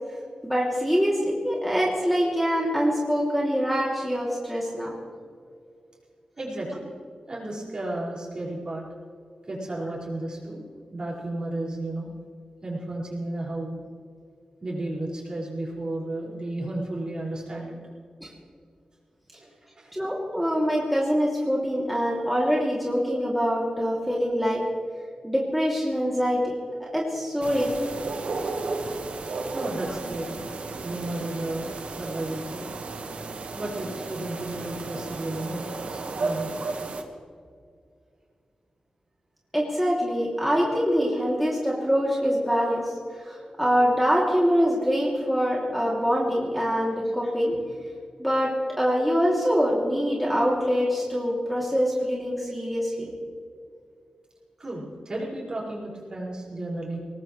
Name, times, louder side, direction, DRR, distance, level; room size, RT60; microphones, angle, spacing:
voice 1, 0.4-4.9 18.2-18.3 19.9-24.6 25.2-26.5 26.8-27.7 39.5-42.9 43.2-47.6 48.2-53.1, equal, ahead, -5 dB, 2.8 m, -24 dB
voice 2, 6.4-6.9 7.3-8.9 9.4-10.6 10.9-12.1 12.6-13.8 14.6-17.8 19.4-19.9 29.5-30.4 30.8-32.7 33.5-36.5 54.6-57.0, right 1 dB, 40° right, -4 dB, 5.5 m, -33 dB
sound 1, 27.4-37.0, right 3 dB, 75° right, 1.5 m, -34 dB
22.5 x 19.0 x 3.2 m, 2.2 s
wide cardioid pair, 105°, 2 cm